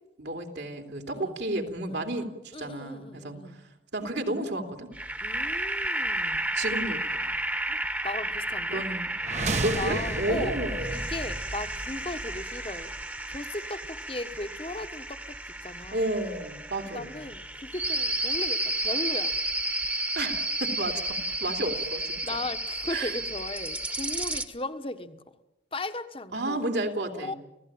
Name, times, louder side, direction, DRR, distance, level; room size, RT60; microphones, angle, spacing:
voice 1, 0.2-3.6 3.9-4.9 6.5-7.3 8.7-9.1 9.6-11.1 15.9-17.2 20.1-22.4 22.9-23.2 26.3-27.4, right 1 dB, 65° right, 4 dB, 3.0 m, -32 dB
voice 2, 2.5-3.6 5.2-6.5 7.7-8.8 9.8-10.6 10.9-12.9 13.3-15.3 15.6-16.0 16.9-19.3 22.2-25.2 25.7-26.7 27.1-27.3, left 2 dB, 30° left, 10 dB, 1.3 m, -37 dB
sound 1, 4.9-24.5, right 1 dB, 10° right, 1.3 m, -32 dB
sound 2, 9.2-13.2, right 2 dB, 40° right, 1.1 m, -34 dB
29.5 x 16.5 x 8.8 m, 0.96 s
head